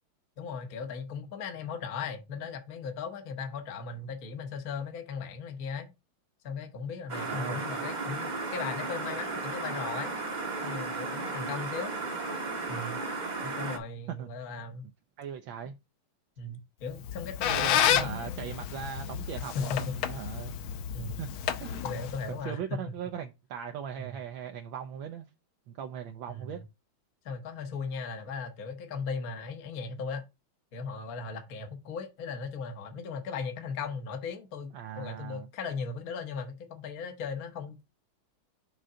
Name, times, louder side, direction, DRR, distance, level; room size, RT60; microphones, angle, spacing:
voice 1, 0.4-5.9 6.4-10.1 10.6-11.9 12.7-13.0 13.4-14.8 16.4-18.5 19.5-19.8 20.9-21.2 21.8-22.6 24.0-24.2 26.3-26.6 27.2-30.3 30.7-37.9, left 5 dB, 50° left, 1.3 m, -37 dB
sound 1, 7.1-13.8, right 3 dB, 30° right, 0.8 m, -34 dB
voice 2, 7.3-7.6 14.1-14.3 15.2-15.8 17.5-20.6 21.2-21.3 21.6-21.9 22.3-25.3 25.7-26.6 34.7-35.5, right 8 dB, 75° right, 1.4 m, -39 dB
Squeak, 16.9-22.4, left 9 dB, 80° left, 1.6 m, -31 dB
6.5 x 3.8 x 5.5 m
omnidirectional pair, 2.2 m